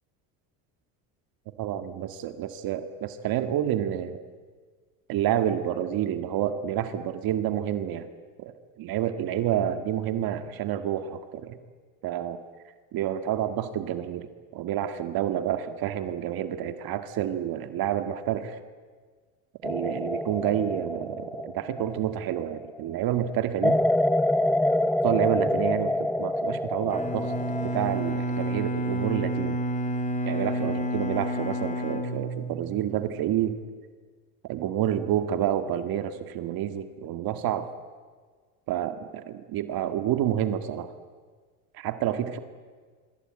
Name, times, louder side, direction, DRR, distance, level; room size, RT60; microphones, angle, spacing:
voice 1, 1.6-4.2 5.1-8.1 8.4-8.5 8.8-11.6 12.0-12.4 12.9-14.3 14.5-18.6 19.6-23.8 25.0-27.3 27.6-29.6 30.3-33.6 34.5-37.7 38.7-40.9 41.7-42.4, right 11 dB, 60° right, 9 dB, 1.9 m, -29 dB
sound 1, 19.6-22.6 23.6-27.9, left 1 dB, 5° left, 0.8 m, -26 dB
Bowed string instrument, 26.9-32.9, equal, 20° left, 3.0 m, -30 dB
25.5 x 24.5 x 8.9 m, 1.5 s
cardioid pair, 110°, 40 cm